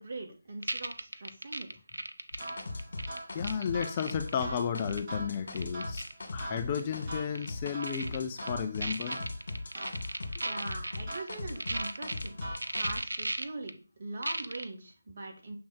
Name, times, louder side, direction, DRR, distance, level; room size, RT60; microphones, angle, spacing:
voice 1, 0.0-1.7 10.4-12.4 12.6-15.6, right 2 dB, 45° right, 1 dB, 2.2 m, -41 dB
sound 1, 0.6-4.4 4.8-5.0 5.3-6.1 6.4-6.5 6.8-6.9 7.3-8.2 8.5-8.6 8.8-12.3 12.5-13.7 14.2-14.6, right 2 dB, 80° right, 0.8 m, -36 dB
sound 2, 2.3-7.2 7.5-13.0, left 2 dB, 60° left, 2.2 m, -39 dB
sound 3, 2.4-13.0, right 1 dB, 25° right, 2.6 m, -44 dB
voice 2, 3.3-6.1 6.3-9.2, left 7 dB, 25° left, 7 dB, 0.4 m, -33 dB
7.4 x 3.6 x 4.5 m, 0.34 s
figure-of-eight pair, 165°, 0 cm